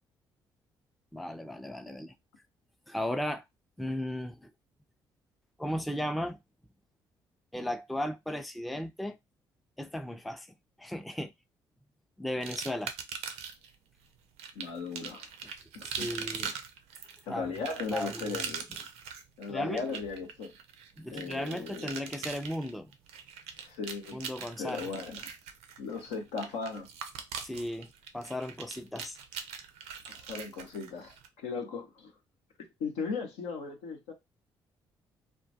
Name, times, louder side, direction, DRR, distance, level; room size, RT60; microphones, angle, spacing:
voice 1, 1.1-2.1 2.9-3.4 3.8-4.5 5.6-6.4 7.5-9.2 9.8-10.5 10.8-11.3 12.2-12.9 16.0-16.5 17.3-17.4 17.9-18.4 19.5-19.9 21.0-22.9 24.1-24.8 27.4-27.9 28.1-29.2, left 1 dB, ahead, 0.3 m, -35 dB
sound 1, 12.4-13.7 14.4-31.3, right 7 dB, 75° right, 0.4 m, -41 dB
voice 2, 14.5-15.3 15.7-16.6 17.3-18.7 19.4-20.5 21.1-21.9 23.6-24.2 24.6-25.3 25.8-26.9 30.0-32.1 32.6-34.1, left 4 dB, 75° left, 0.6 m, -37 dB
2.2 x 2.2 x 2.6 m
hypercardioid pair, 45°, 11 cm